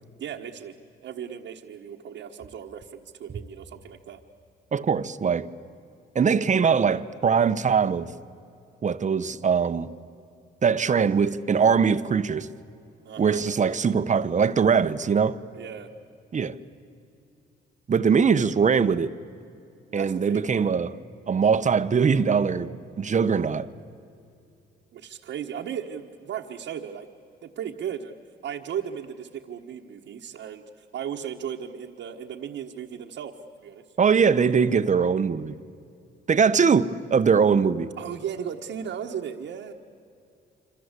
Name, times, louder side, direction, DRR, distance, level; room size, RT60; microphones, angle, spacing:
voice 1, 0.2-0.7 1.0-4.2 13.0-13.4 15.5-15.9 19.9-20.7 24.9-27.1 27.4-28.2 28.4-33.8 38.0-39.7, right 8 dB, 70° right, 1.5 m, -36 dB
voice 2, 4.7-5.5 6.1-8.1 8.8-9.9 10.6-12.5 13.2-15.4 16.3-16.5 17.9-19.1 19.9-21.0 21.3-23.7 34.0-35.6 36.3-37.9, right 6 dB, 40° right, 1.0 m, -22 dB
26.5 x 26.5 x 8.3 m
cardioid pair, 90°, 20 cm